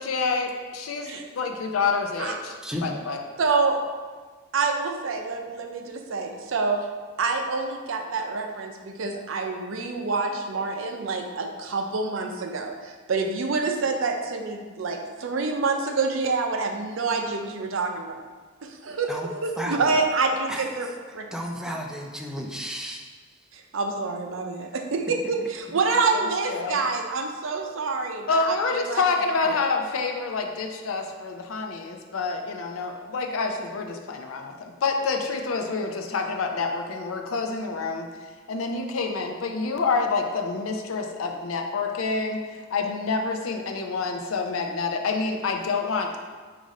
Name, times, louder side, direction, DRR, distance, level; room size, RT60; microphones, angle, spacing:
voice 1, 0.0-3.2 26.5-26.8 28.3-38.1 38.5-46.2, left 4 dB, 85° left, 4 dB, 0.5 m, -27 dB
voice 2, 3.4-3.8 4.5-6.8 7.2-18.2 18.6-21.3 23.5-29.0 29.5-29.6, right 4 dB, 70° right, 3 dB, 0.5 m, -27 dB
voice 3, 21.3-23.0, equal, 5° right, 0 dB, 0.4 m, -32 dB
4.9 x 2.6 x 4.1 m, 1.4 s
head